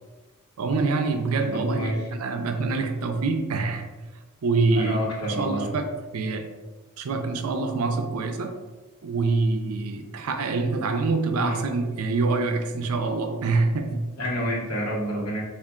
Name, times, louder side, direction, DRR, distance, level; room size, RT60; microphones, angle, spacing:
voice 1, 0.6-3.9 4.4-5.0 5.3-5.8 6.1-6.5 7.0-8.6 9.0-14.0, right 3 dB, 70° right, 6 dB, 0.5 m, -25 dB
voice 2, 1.5-2.0 4.7-5.7 11.3-11.6 14.2-15.4, equal, 70° left, -4 dB, 1.2 m, -28 dB
3.6 x 2.5 x 3.6 m, 1.2 s
head